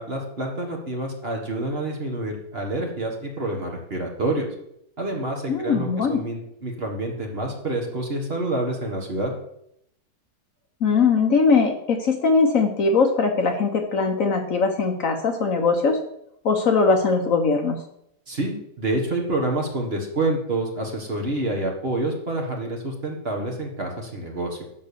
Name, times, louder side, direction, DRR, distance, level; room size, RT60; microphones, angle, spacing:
voice 1, 0.0-4.5 5.0-9.3 18.3-24.6, right 2 dB, 35° right, 1 dB, 1.7 m, -28 dB
voice 2, 5.5-6.2 10.8-16.0 16.4-17.8, left 4 dB, 55° left, 4 dB, 1.3 m, -20 dB
11.0 x 3.9 x 6.9 m, 0.75 s
omnidirectional pair, 1.8 m